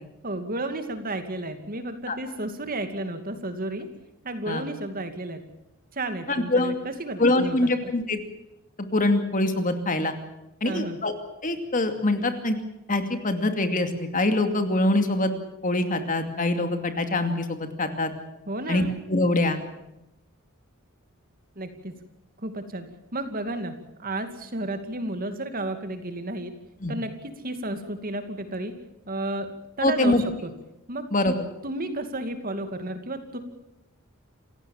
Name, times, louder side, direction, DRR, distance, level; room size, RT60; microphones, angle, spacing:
voice 1, 0.2-3.9 4.2-5.4 5.9-7.9 10.6-11.0 18.5-18.9 21.6-21.9 22.4-22.9 23.1-26.5 26.9-28.7 29.1-29.5 29.8-30.5 30.9-31.1 31.6-33.4, right 1 dB, 40° right, 8 dB, 2.5 m, -32 dB
voice 2, 6.3-6.7 7.2-8.2 8.9-10.1 10.6-11.1 11.4-12.6 12.9-15.3 15.6-18.1 18.7-19.6 26.8-27.0 29.8-30.2 31.1-31.3, left 2 dB, 40° left, 7 dB, 2.5 m, -24 dB
28.0 x 16.5 x 7.3 m, 0.89 s
head